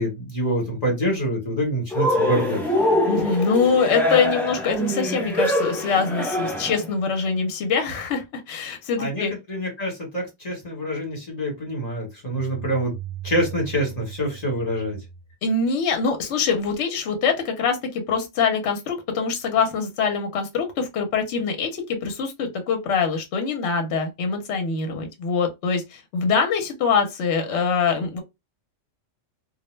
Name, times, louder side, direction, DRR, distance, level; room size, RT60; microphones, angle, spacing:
voice 1, 0.0-2.6 9.0-9.2 9.5-12.9 13.2-15.0, equal, 35° left, 1.2 m, -26 dB
Cheering, 1.9-6.9, left 1 dB, ahead, 0.5 m, -24 dB
voice 2, 3.1-9.3 15.4-28.2, left 5 dB, 70° left, 0.9 m, -24 dB
2.3 x 2.0 x 3.1 m
omnidirectional pair, 1.3 m